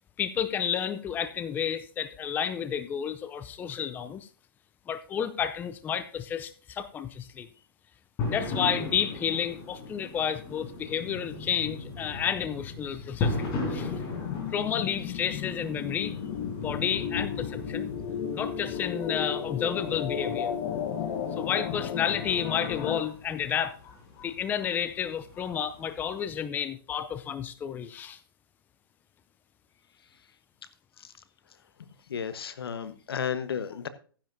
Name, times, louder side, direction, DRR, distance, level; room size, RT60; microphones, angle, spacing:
voice 1, 0.2-4.3 4.9-7.5 8.3-13.9 14.5-16.1 16.6-17.9 18.3-20.5 21.4-23.8 24.2-28.2, left 8 dB, 15° left, 0.5 m, -31 dB
sound 1, 8.2-26.2, left 3 dB, 35° left, 4.8 m, -38 dB
sound 2, 13.7-23.0, left 8 dB, 50° left, 1.2 m, -34 dB
voice 2, 32.1-33.9, left 7 dB, 80° left, 1.2 m, -33 dB
14.5 x 10.0 x 2.7 m
hypercardioid pair, 135°, 13 cm